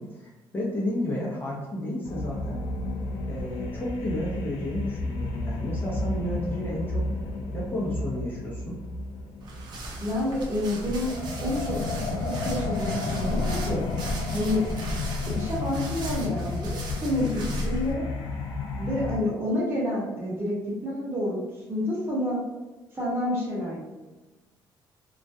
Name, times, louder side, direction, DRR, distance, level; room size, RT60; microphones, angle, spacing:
voice 1, 0.0-2.6 3.2-7.1 7.5-8.8, left 1 dB, 25° left, -5 dB, 0.6 m, -32 dB
sound 1, 2.0-19.2, left 3 dB, 90° left, 0.4 m, -32 dB
sound 2, 9.4-17.9, equal, 55° right, 0.5 m, -35 dB
voice 2, 10.0-11.8 12.2-13.8 14.3-14.6 15.2-18.0 18.8-21.4 21.7-22.4 22.9-23.8, left 1 dB, 25° right, -6 dB, 1.0 m, -29 dB
2.3 x 2.1 x 2.6 m, 1.2 s
cardioid pair, 125°, 9 cm